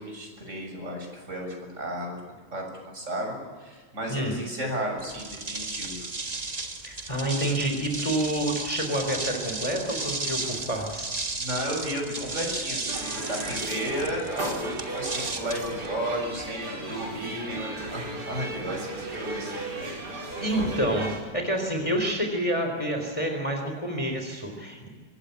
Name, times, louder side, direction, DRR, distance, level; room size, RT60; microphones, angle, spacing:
voice 1, 0.0-2.1 2.5-6.0 10.6-10.7 11.4-19.7, equal, 40° right, 1 dB, 7.3 m, -33 dB
sound 1, 5.0-16.5, right 3 dB, 25° right, 1.5 m, -34 dB
voice 2, 6.8-11.1 20.4-21.1 21.3-24.9, right 1 dB, 15° left, 3 dB, 3.9 m, -28 dB
sound 2, 12.9-21.2, right 2 dB, 65° right, 4.9 m, -35 dB
25.0 x 20.5 x 8.4 m, 1.5 s
omnidirectional pair, 1.9 m